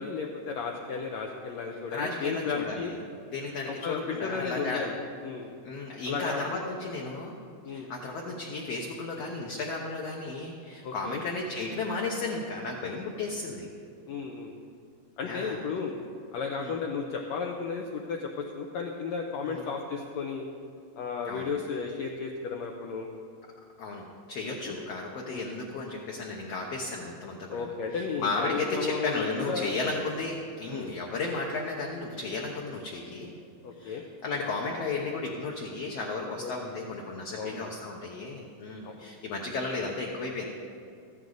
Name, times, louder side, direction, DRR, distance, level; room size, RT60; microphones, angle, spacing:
voice 1, 0.0-2.9 3.8-5.5 6.1-6.6 7.6-7.9 10.8-11.2 14.1-14.5 15.2-15.9 16.3-20.4 21.0-23.1 24.6-24.8 25.3-25.5 27.5-29.8 30.7-30.9 33.6-34.0 36.4-36.5 37.3-37.6 38.8-39.1, left 5 dB, 85° left, 1 dB, 1.5 m, -34 dB
voice 2, 1.9-3.0 3.3-4.9 5.6-7.4 7.7-13.7 15.2-15.6 16.6-16.7 19.4-19.7 21.2-21.5 23.8-27.6 27.9-33.4 33.8-40.5, left 3 dB, 70° left, -1 dB, 1.6 m, -34 dB
14.5 x 13.0 x 3.9 m, 2.4 s
omnidirectional pair, 4.1 m